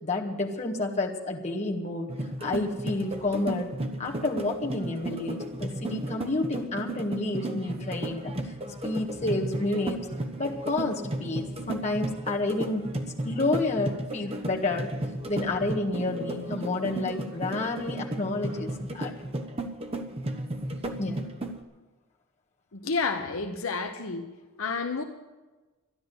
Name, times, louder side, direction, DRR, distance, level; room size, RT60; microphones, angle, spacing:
voice 1, 0.0-2.1 2.4-3.7 4.0-8.3 8.8-10.0 10.4-14.9 15.3-19.1 21.0-21.2, left 2 dB, 30° left, -1 dB, 1.7 m, -30 dB
sound 1, 2.1-21.6, right 1 dB, 25° right, 1.0 m, -34 dB
voice 2, 22.7-24.3 24.6-25.0, left 4 dB, 65° left, 4 dB, 0.9 m, -30 dB
13.0 x 11.0 x 7.9 m, 1.2 s
head